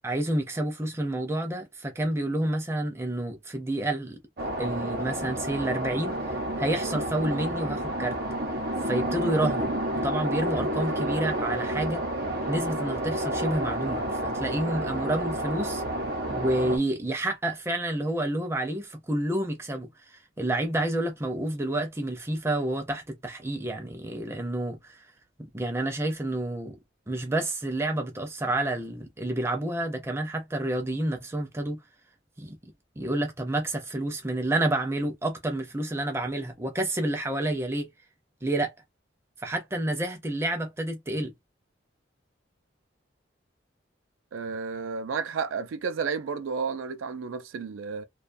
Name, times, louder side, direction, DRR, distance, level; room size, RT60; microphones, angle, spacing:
voice 1, 0.0-4.2 4.6-6.2 6.6-8.2 8.8-12.0 12.5-15.8 16.3-25.1 25.4-26.8 27.1-31.8 32.4-32.6 33.0-37.9 38.4-38.7 39.4-41.3, right 1 dB, 15° right, 0.5 m, -29 dB
sound 1, 4.4-16.8, right 1 dB, 50° right, 0.7 m, -30 dB
voice 2, 44.3-48.1, right 5 dB, 85° right, 0.4 m, -32 dB
2.3 x 2.2 x 2.5 m
head